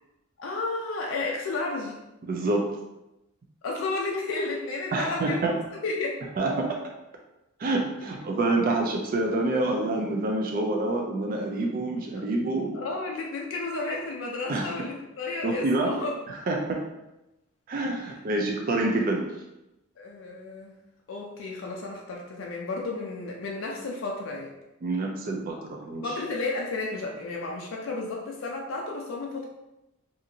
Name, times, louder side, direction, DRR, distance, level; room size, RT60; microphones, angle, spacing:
voice 1, 0.4-2.0 3.6-5.4 5.8-6.5 12.2-12.3 12.7-16.1 20.0-20.7 21.1-24.5 26.0-29.4, left 3 dB, 65° left, -1 dB, 0.4 m, -32 dB
voice 2, 2.2-2.7 4.9-5.6 6.4-6.8 7.6-12.8 14.5-14.7 15.4-15.9 16.5-16.8 17.7-19.2 24.8-26.1, right 2 dB, 40° right, 0 dB, 0.3 m, -27 dB
2.8 x 2.5 x 2.6 m, 0.94 s
head